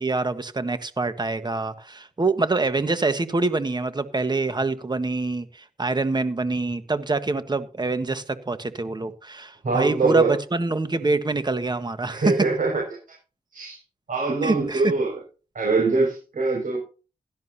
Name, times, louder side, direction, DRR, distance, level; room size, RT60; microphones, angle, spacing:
voice 1, 0.0-12.3 14.4-14.9, right 3 dB, 30° right, 10 dB, 1.5 m, -25 dB
voice 2, 9.6-10.3 12.1-12.8 13.5-13.8 14.1-15.2 15.5-16.8, right 3 dB, 70° right, -1 dB, 6.3 m, -23 dB
16.5 x 13.0 x 2.9 m, 0.35 s
cardioid pair, 75°, 15 cm